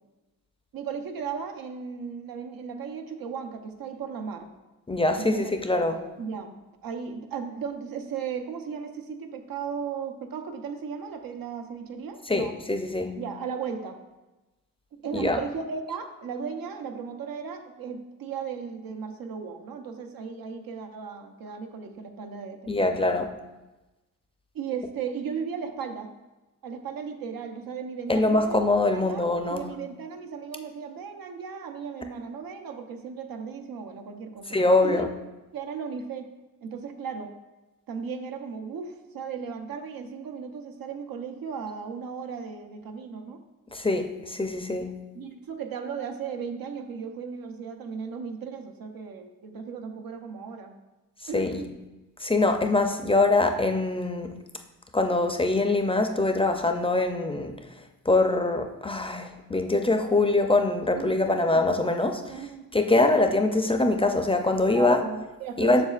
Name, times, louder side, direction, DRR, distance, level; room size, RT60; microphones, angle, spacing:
voice 1, 0.7-4.5 5.2-5.5 6.2-6.6 6.8-12.5 13.2-14.0 14.9-22.9 24.5-26.1 26.6-34.5 34.8-35.1 35.5-36.3 36.6-37.3 37.9-43.4 45.1-50.8 51.3-51.7 60.9-61.4 62.3-62.7 63.0-63.2 64.7-65.9, right 6 dB, 90° right, 5 dB, 0.7 m, -36 dB
voice 2, 4.9-6.0 12.3-13.2 15.1-15.4 22.7-23.3 28.1-29.7 34.5-35.1 43.7-44.9 51.3-51.6 52.2-54.3 54.9-57.6 58.1-62.4 62.7-65.0 65.6-65.8, left 2 dB, 15° left, 5 dB, 0.4 m, -23 dB
7.2 x 6.3 x 2.4 m, 1.1 s
wide cardioid pair, 105°, 34 cm